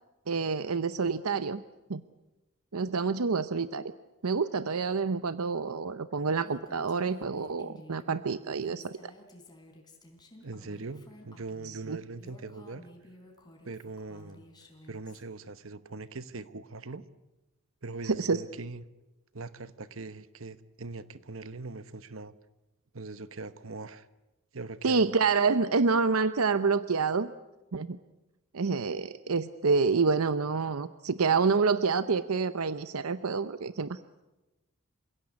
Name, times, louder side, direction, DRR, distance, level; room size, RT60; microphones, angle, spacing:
voice 1, 0.3-1.6 1.9-2.0 2.7-3.9 4.2-9.0 11.6-12.0 18.0-18.4 24.8-27.3 27.7-28.0 28.5-34.0, right 4 dB, 90° right, 13 dB, 0.8 m, -28 dB
Female speech woman speaking, 6.4-15.2, left 1 dB, 20° left, 3.7 m, -53 dB
voice 2, 10.4-12.8 13.6-14.4 14.9-17.0 17.8-18.8 19.3-22.3 22.9-24.1 24.5-25.2, right 3 dB, 65° right, 13 dB, 1.1 m, -41 dB
28.5 x 16.5 x 9.7 m, 1.0 s
head